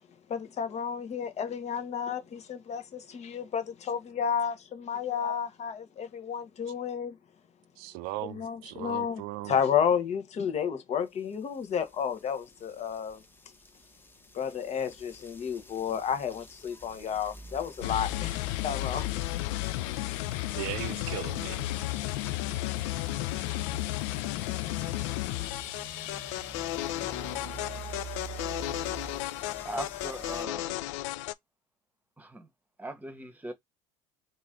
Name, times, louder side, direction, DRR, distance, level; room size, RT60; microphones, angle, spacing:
voice 1, 0.3-7.2 8.3-13.2 14.3-19.1, left 7 dB, 40° left, 1.0 m, -31 dB
voice 2, 7.8-9.6 20.6-21.6, right 18 dB, 60° right, 0.4 m, -38 dB
sound 1, 11.9-30.4, right 1 dB, 10° left, 1.0 m, -46 dB
sound 2, 17.8-31.3, left 18 dB, 70° left, 0.4 m, -33 dB
voice 3, 29.6-30.8 32.2-32.5 32.8-33.5, right 1 dB, 10° right, 1.2 m, -39 dB
3.0 x 2.6 x 3.7 m
hypercardioid pair, 70°, 17 cm